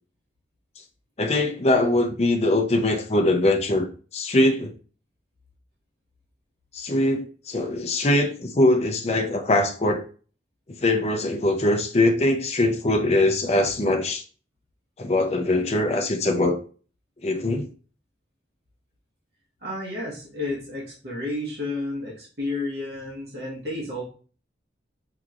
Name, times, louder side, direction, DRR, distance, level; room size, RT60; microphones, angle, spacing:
voice 1, 1.2-3.9 4.1-4.7 6.7-10.0 10.8-14.2 15.0-16.6 17.2-17.7, left 1 dB, 35° left, 0.5 m, -22 dB
voice 2, 19.6-24.0, left 2 dB, 60° right, 1.2 m, -31 dB
4.8 x 2.9 x 2.4 m
head